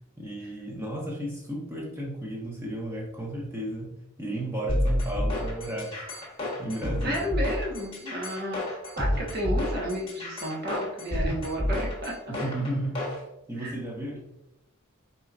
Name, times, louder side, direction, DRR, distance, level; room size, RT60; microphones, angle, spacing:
voice 1, 0.2-7.3 12.3-14.2, right 1 dB, 10° right, -3 dB, 1.0 m, -34 dB
sound 1, 4.7-13.2, left 1 dB, 25° left, 1.2 m, -29 dB
voice 2, 7.0-12.1 13.6-13.7, equal, 45° right, -3 dB, 1.2 m, -32 dB
4.7 x 4.3 x 2.5 m, 0.88 s
head